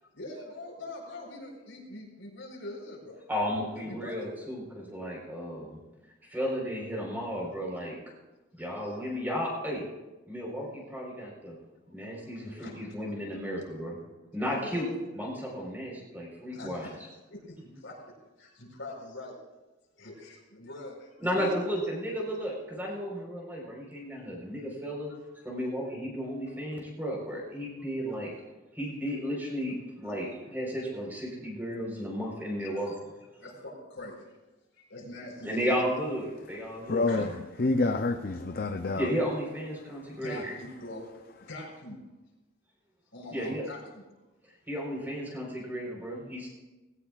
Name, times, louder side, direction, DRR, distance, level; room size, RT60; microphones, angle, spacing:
voice 1, 0.1-3.2 3.8-4.3 8.5-8.6 12.3-12.8 14.5-15.0 16.5-17.0 17.3-19.3 20.0-21.6 30.0-30.2 32.6-32.7 33.4-34.4 34.7-35.8 37.1-37.3 40.1-41.1 41.4-42.0 43.1-44.1, left 1 dB, 80° left, -1 dB, 4.4 m, -43 dB
voice 2, 3.3-5.8 6.3-7.9 8.6-9.8 10.3-11.6 11.9-14.0 14.3-14.9 15.1-16.9 21.2-25.1 25.4-28.3 28.7-32.9 33.2-33.3 35.4-37.0 39.0-40.5 43.3-43.6 44.7-46.5, equal, 10° right, -2 dB, 4.2 m, -33 dB
voice 3, 36.6-39.1 39.7-40.2, left 3 dB, 50° left, 6 dB, 0.6 m, -29 dB
19.0 x 17.0 x 2.4 m, 1.1 s
head